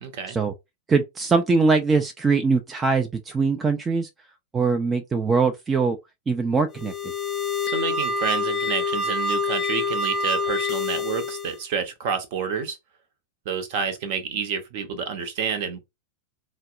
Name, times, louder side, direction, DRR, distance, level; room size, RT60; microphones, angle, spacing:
voice 1, 0.0-0.4 7.7-12.8 13.5-15.8, right 6 dB, 50° right, 0.7 m, -29 dB
voice 2, 0.9-4.1 4.5-6.0 6.3-6.9, right 4 dB, 15° right, 0.4 m, -22 dB
sound 1, 6.7-11.6, left 3 dB, 30° left, 0.6 m, -26 dB
4.1 x 2.0 x 2.4 m
figure-of-eight pair, 90°, 0 cm